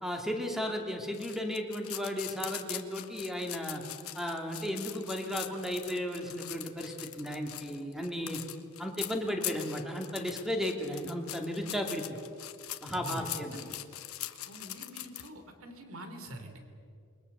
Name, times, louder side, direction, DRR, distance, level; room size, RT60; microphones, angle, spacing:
voice 1, 0.0-3.8 4.1-8.4 8.8-12.0 12.8-13.6, equal, ahead, 2 dB, 2.5 m, -35 dB
sound 1, 1.1-15.3, left 14 dB, 85° left, 1.2 m, -42 dB
voice 2, 12.9-13.8 14.4-16.6, equal, 70° right, 7 dB, 3.0 m, -45 dB
27.5 x 22.5 x 6.8 m, 2.5 s
head